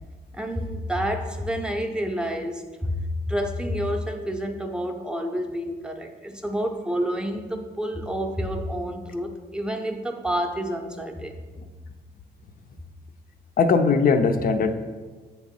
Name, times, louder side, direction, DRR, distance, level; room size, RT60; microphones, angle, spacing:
voice 1, 0.3-11.3, equal, 5° right, 3 dB, 0.6 m, -29 dB
voice 2, 13.6-14.7, left 5 dB, 55° left, 8 dB, 0.5 m, -19 dB
7.7 x 3.0 x 5.3 m, 1.4 s
cardioid pair, 110°, 18 cm